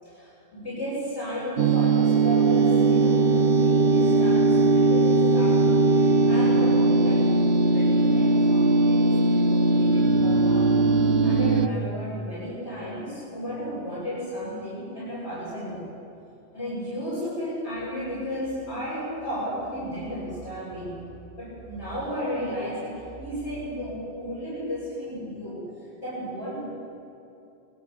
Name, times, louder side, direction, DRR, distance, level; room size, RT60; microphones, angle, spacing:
voice 1, 0.0-10.7 11.2-15.9 16.5-21.0 21.4-26.7, equal, 85° left, -9 dB, 7.7 m, -34 dB
sound 1, 1.6-11.7, right 3 dB, 80° right, 1.2 m, -20 dB
24.5 x 21.0 x 7.3 m, 2.8 s
omnidirectional pair, 1.1 m